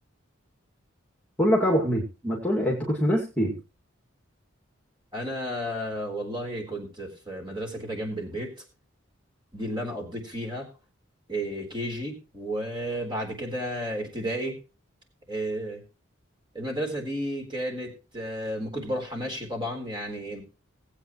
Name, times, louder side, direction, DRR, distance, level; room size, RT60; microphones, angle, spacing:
voice 1, 1.4-3.6, equal, 5° left, -3 dB, 2.4 m, -24 dB
voice 2, 5.1-8.5 9.5-10.7 11.3-14.6 15.3-15.8 16.5-20.4, equal, 25° right, 2 dB, 4.1 m, -32 dB
19.5 x 8.5 x 3.2 m, 0.32 s
head